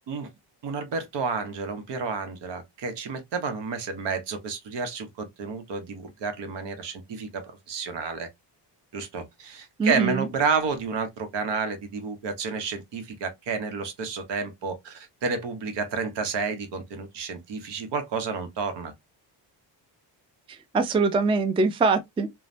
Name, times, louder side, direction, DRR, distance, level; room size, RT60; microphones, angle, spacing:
voice 1, 0.6-8.3 8.9-18.9, right 5 dB, 70° right, 1.0 m, -30 dB
voice 2, 9.8-10.3 20.5-22.3, right 4 dB, 15° right, 0.4 m, -23 dB
3.1 x 2.2 x 2.5 m
cardioid pair, 110°, 44 cm